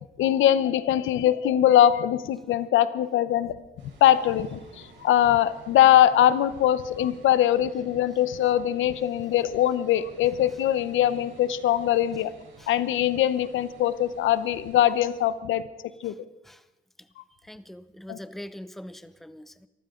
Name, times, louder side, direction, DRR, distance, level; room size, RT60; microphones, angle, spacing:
voice 1, 0.2-3.6 4.0-12.3 12.7-15.6 16.0-16.1 18.1-18.2, left 11 dB, 80° left, 14 dB, 0.8 m, -22 dB
sound 1, 3.8-15.3, right 4 dB, 70° right, 4.7 m, -52 dB
voice 2, 17.4-19.7, left 1 dB, ahead, 13 dB, 0.7 m, -43 dB
24.0 x 14.5 x 3.8 m, 0.99 s
cardioid pair, 90°, 20 cm